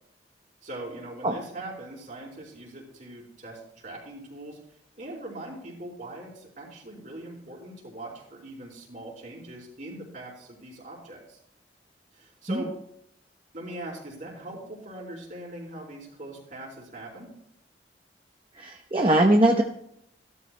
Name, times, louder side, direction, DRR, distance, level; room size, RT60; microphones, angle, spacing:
voice 1, 0.6-4.6 5.0-11.4 12.1-12.7 13.5-17.3, right 1 dB, 50° right, -2 dB, 4.2 m, -41 dB
voice 2, 18.5-19.6, right 1 dB, 30° right, 2 dB, 0.9 m, -21 dB
16.0 x 13.0 x 2.2 m, 0.73 s
head